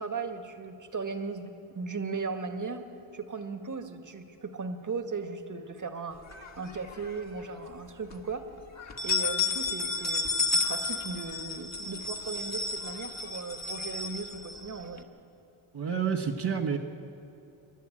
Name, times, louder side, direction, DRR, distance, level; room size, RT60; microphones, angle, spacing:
voice 1, 0.0-2.8 3.1-6.2 6.6-8.5 9.0-15.1, right 4 dB, 40° right, 7 dB, 1.9 m, -37 dB
sound 1, 6.3-7.2 7.6-7.7 8.1-8.2 8.8-15.0, left 3 dB, 35° left, 1.8 m, -32 dB
voice 2, 15.7-16.8, right 6 dB, 55° right, -1 dB, 1.6 m, -29 dB
28.0 x 11.0 x 8.8 m, 2.7 s
cardioid pair, 75°, 48 cm